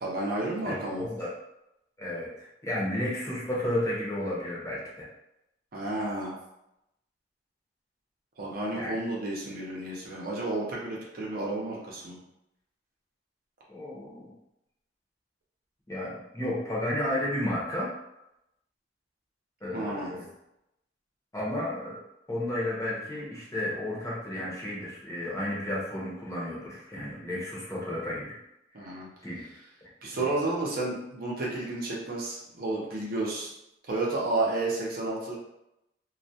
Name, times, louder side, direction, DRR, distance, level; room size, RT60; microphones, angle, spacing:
voice 1, 0.0-1.0 5.7-6.3 8.4-12.2 19.7-20.1 28.7-29.1 30.0-33.5 33.9-35.4, right 2 dB, 55° right, -3 dB, 0.6 m, -31 dB
voice 2, 0.6-1.3 2.0-5.1 8.7-9.0 13.7-14.3 15.9-17.9 19.6-20.3 21.3-22.0 22.3-28.4 28.8-29.4 29.8-30.3, left 1 dB, 15° left, -6 dB, 0.7 m, -33 dB
2.3 x 2.1 x 2.7 m, 0.85 s
head